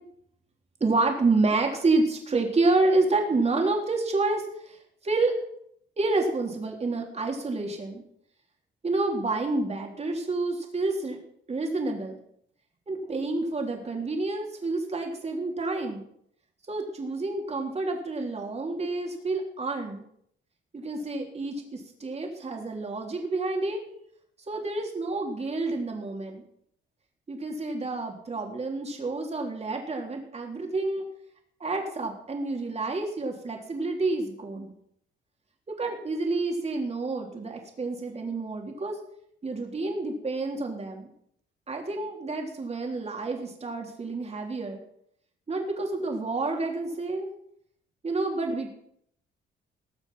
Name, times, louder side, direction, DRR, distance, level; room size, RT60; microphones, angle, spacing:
voice 1, 0.8-4.8 5.0-5.3 6.0-8.0 8.8-11.2 11.5-12.2 12.9-16.1 16.7-20.0 20.7-23.8 24.5-26.4 27.3-31.1 31.6-34.7 35.7-39.0 39.4-41.1 41.7-44.8 45.5-47.3 48.0-48.7, right 3 dB, 30° right, 2 dB, 3.6 m, -29 dB
20.0 x 7.1 x 5.7 m, 0.70 s
cardioid pair, 90°, 20 cm